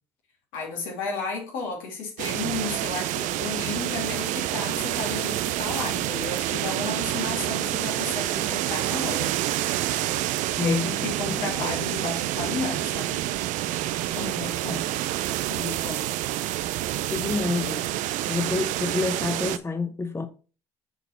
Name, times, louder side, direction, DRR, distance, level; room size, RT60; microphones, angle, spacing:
voice 1, 0.5-9.3 10.6-13.2 14.1-14.8 15.5-16.0, left 4 dB, 75° left, 2.5 m, -33 dB
sound 1, 2.2-19.6, right 14 dB, 65° right, 0.4 m, -28 dB
voice 2, 10.6-10.9 11.3-11.5 14.7-14.8 17.1-17.9 18.3-20.3, left 4 dB, 20° left, 0.8 m, -28 dB
7.0 x 4.0 x 4.4 m
hypercardioid pair, 55°, 14 cm